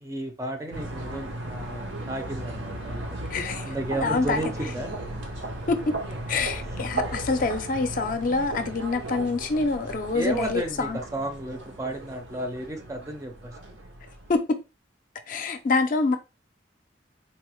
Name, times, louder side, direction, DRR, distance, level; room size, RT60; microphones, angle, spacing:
voice 1, 0.0-3.0 3.6-4.9 10.1-13.5, right 1 dB, 15° right, 0.5 m, -33 dB
sound 1, 0.7-14.3, right 1 dB, 80° right, 0.8 m, -36 dB
voice 2, 3.3-4.4 5.7-5.9 6.3-11.0 14.3-14.6 15.3-16.2, left 3 dB, 45° left, 0.4 m, -26 dB
4.0 x 2.1 x 2.9 m
head